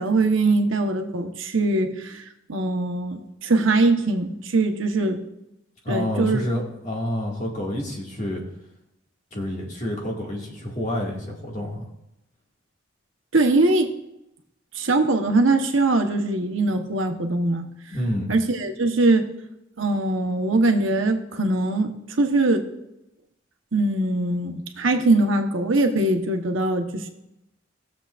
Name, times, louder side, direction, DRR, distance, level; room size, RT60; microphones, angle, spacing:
voice 1, 0.0-2.2 2.5-5.2 5.9-6.4 13.3-13.9 14.7-17.7 18.3-19.3 19.8-22.6 23.7-27.1, right 2 dB, 80° right, 5 dB, 1.1 m, -22 dB
voice 2, 5.8-8.4 9.3-11.8 17.9-18.3, left 1 dB, 40° left, -2 dB, 2.0 m, -28 dB
18.5 x 7.3 x 2.5 m, 0.86 s
head